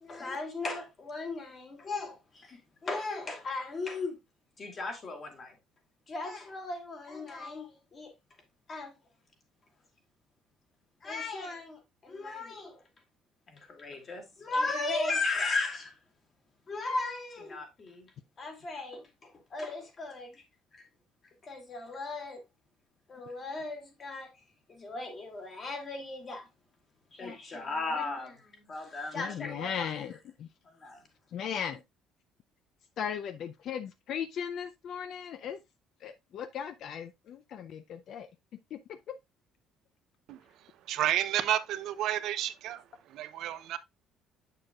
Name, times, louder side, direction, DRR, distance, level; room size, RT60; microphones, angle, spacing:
voice 1, 0.0-4.2 4.6-5.6 6.1-8.1 8.7-9.0 11.0-12.8 13.5-16.0 16.7-18.1 18.4-20.4 20.7-20.8 21.4-22.4 23.1-24.3 24.7-26.5 27.1-30.0 30.6-31.0 31.4-31.5, left 3 dB, 30° left, 2.0 m, -36 dB
voice 2, 29.1-30.5 31.3-31.8 33.0-35.6 36.0-38.3 38.7-38.8 39.1-39.2, left 8 dB, 50° left, 0.5 m, -37 dB
voice 3, 40.9-43.8, right 12 dB, 65° right, 0.6 m, -31 dB
7.8 x 6.7 x 2.3 m
cardioid pair, 150°, 0 cm